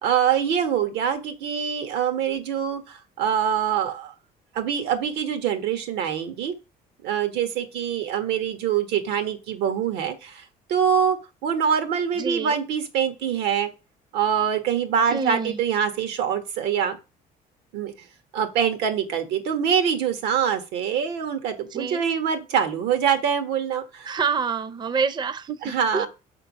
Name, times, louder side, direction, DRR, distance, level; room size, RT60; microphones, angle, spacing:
voice 1, 0.0-4.1 4.5-6.5 7.0-10.4 10.7-11.2 11.4-13.7 14.1-17.0 17.7-17.9 18.3-24.1 25.6-26.1, right 8 dB, 90° right, 1.4 m, -24 dB
voice 2, 12.2-12.6 15.1-15.6 21.7-22.0 24.0-26.1, right 5 dB, 25° right, 0.5 m, -27 dB
6.2 x 3.7 x 5.9 m
cardioid pair, 110°, 17 cm